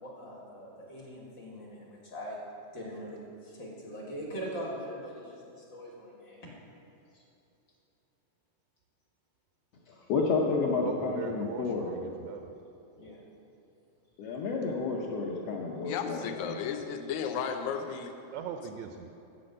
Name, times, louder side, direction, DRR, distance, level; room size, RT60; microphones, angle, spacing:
voice 1, 0.0-2.4 2.7-6.5 7.1-7.2 9.8-10.1 12.9-13.2, equal, 50° left, -4 dB, 1.5 m, -42 dB
voice 2, 10.0-11.9 14.2-16.6, left 4 dB, 70° left, -3 dB, 1.6 m, -30 dB
voice 3, 10.8-12.5 18.3-19.1, right 8 dB, 80° right, 5 dB, 1.8 m, -40 dB
voice 4, 15.8-18.1, left 7 dB, 90° left, 7 dB, 2.0 m, -34 dB
8.3 x 6.0 x 6.4 m, 2.7 s
omnidirectional pair, 3.3 m